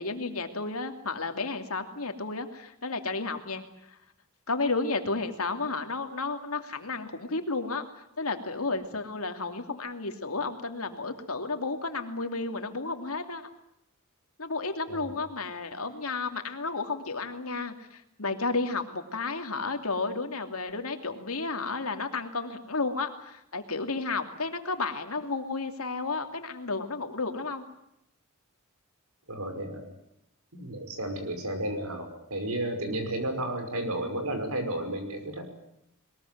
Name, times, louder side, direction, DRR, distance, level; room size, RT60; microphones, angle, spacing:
voice 1, 0.0-3.6 4.5-7.8 8.2-13.4 14.4-27.6 32.9-33.0, left 3 dB, 75° left, 7 dB, 2.7 m, -32 dB
voice 2, 29.3-29.9 30.5-35.4, right 1 dB, 75° right, 7 dB, 5.7 m, -32 dB
22.0 x 21.0 x 9.3 m, 0.78 s
head